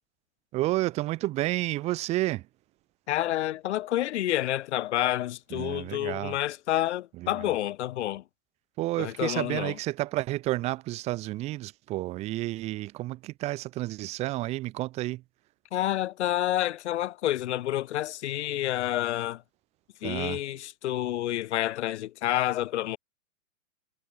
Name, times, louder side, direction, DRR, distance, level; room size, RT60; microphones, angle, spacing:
voice 1, 0.5-2.5 5.5-6.4 7.2-7.6 8.8-15.2 20.0-20.4, right 17 dB, 15° right, 0.5 m, -31 dB
voice 2, 3.1-8.2 9.0-9.7 15.7-19.4 20.0-23.0, left 13 dB, 55° left, 1.9 m, -29 dB
hypercardioid pair, 120°, 40 cm